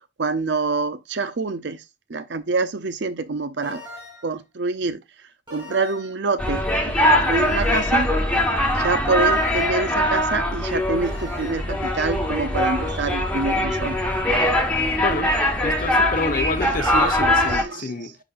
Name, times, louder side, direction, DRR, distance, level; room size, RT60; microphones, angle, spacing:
voice 1, 0.2-1.8 2.1-3.8 4.2-5.0 5.5-8.1 8.8-14.0 16.6-18.0, right 3 dB, 65° right, 0.6 m, -26 dB
sound 1, 3.6-4.4 5.5-6.2 7.3-8.1 9.2-9.9 11.0-11.6, left 1 dB, 25° right, 3.5 m, -40 dB
sound 2, 6.4-17.6, left 1 dB, 5° left, 1.3 m, -22 dB
voice 2, 15.0-18.2, left 3 dB, 50° left, 0.7 m, -28 dB
9.9 x 3.9 x 2.5 m
head